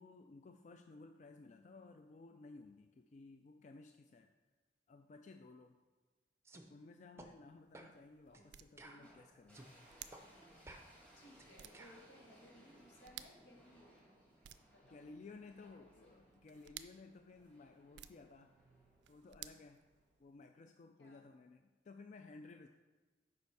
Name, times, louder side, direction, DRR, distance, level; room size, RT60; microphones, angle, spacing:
voice 1, 0.0-4.3 4.9-5.8 6.5-9.7 14.8-18.7 19.1-19.8 20.2-22.7, left 3 dB, 45° left, 6 dB, 0.3 m, -57 dB
sound 1, 6.5-6.7 7.2-7.3 7.7-8.0 8.3-8.5 8.8-9.7 10.1-10.3 10.7-12.1, right 2 dB, 15° right, 0.6 m, -56 dB
sound 2, 7.4-20.5, right 12 dB, 80° right, 0.4 m, -59 dB
sound 3, 9.0-20.2, equal, 10° left, 1.8 m, -66 dB
voice 2, 11.2-14.0 14.6-15.1 15.6-15.9 21.0-21.3, equal, 80° left, 0 dB, 1.6 m, -62 dB
6.9 x 5.3 x 4.7 m, 1.3 s
head